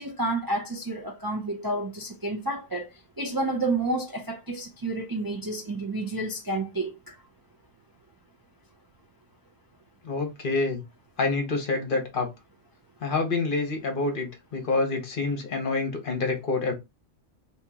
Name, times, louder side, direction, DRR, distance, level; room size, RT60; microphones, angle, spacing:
voice 1, 0.0-2.9 3.2-7.2, right 2 dB, 30° right, 0.4 m, -30 dB
voice 2, 10.0-10.8 11.2-12.3 13.0-16.7, left 3 dB, 50° left, 0.9 m, -27 dB
2.9 x 2.8 x 3.5 m
omnidirectional pair, 1.2 m